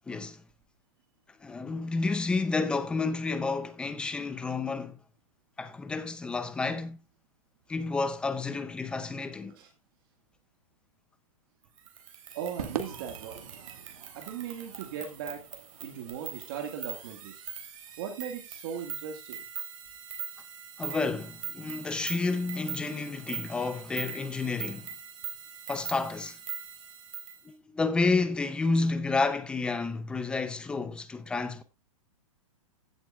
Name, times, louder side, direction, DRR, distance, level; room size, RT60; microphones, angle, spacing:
voice 1, 0.1-0.4 1.4-5.0 5.6-7.0 7.7-9.5 20.8-24.9 25.7-26.4 27.4-31.6, left 3 dB, 5° left, 0.6 m, -30 dB
sound 1, 11.8-27.4, right 8 dB, 65° right, 3.5 m, -42 dB
voice 2, 12.3-13.4 14.1-15.4 15.8-17.4 18.0-19.4, right 8 dB, 40° right, 1.9 m, -38 dB
Crowd / Fireworks, 12.6-17.1, right 7 dB, 90° right, 1.9 m, -43 dB
15.5 x 7.8 x 2.4 m
hypercardioid pair, 165°, 18 cm